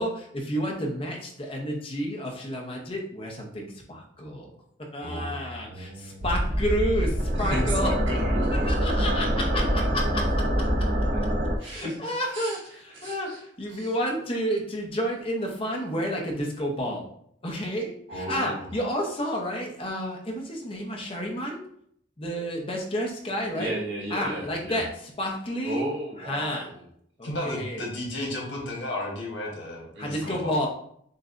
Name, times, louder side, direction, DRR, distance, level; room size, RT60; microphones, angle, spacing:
voice 1, 0.0-4.5 4.9-7.9 8.7-10.9 11.6-12.6 13.0-17.0 17.4-21.6 22.2-23.8 24.1-25.8 26.3-26.7 27.2-27.9 30.0-30.7, equal, 30° left, 0 dB, 0.8 m, -30 dB
voice 2, 5.0-6.3 7.3-9.4 11.1-11.2 11.6-13.4 13.7-13.9 18.1-18.7 23.5-24.8 25.6-26.9 29.9-30.4, right 1 dB, 85° right, -4 dB, 1.4 m, -35 dB
sound 1, 6.2-11.6, equal, 45° right, 0.6 m, -25 dB
voice 3, 27.2-30.6, left 1 dB, 90° left, -1 dB, 1.3 m, -33 dB
6.5 x 2.2 x 2.5 m, 0.68 s
head